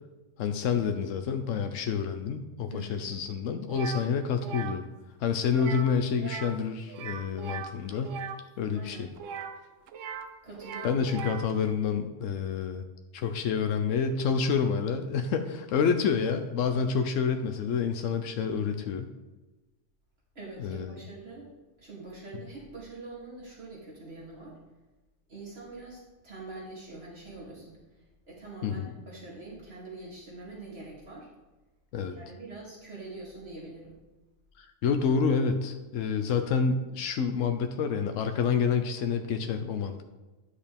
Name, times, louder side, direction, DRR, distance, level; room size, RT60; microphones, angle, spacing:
voice 1, 0.4-4.8 5.2-8.2 8.6-9.1 10.8-12.8 13.1-19.1 20.6-21.0 28.6-28.9 31.9-32.2 34.6-40.0, left 6 dB, 85° left, 7 dB, 1.0 m, -28 dB
voice 2, 2.7-3.1 8.7-9.1 10.4-11.0 15.8-15.9 20.3-21.5 21.8-24.6 25.3-27.8 28.3-28.8 29.1-31.3 32.0-34.0, right 3 dB, 55° right, -6 dB, 3.0 m, -44 dB
sound 1, 3.7-4.0 4.4-4.8 5.5-5.9 6.2-6.6 6.9-8.4 9.2-10.3 10.5-11.5, right 7 dB, 85° right, 1.0 m, -39 dB
9.9 x 6.5 x 3.5 m, 1.2 s
omnidirectional pair, 1.3 m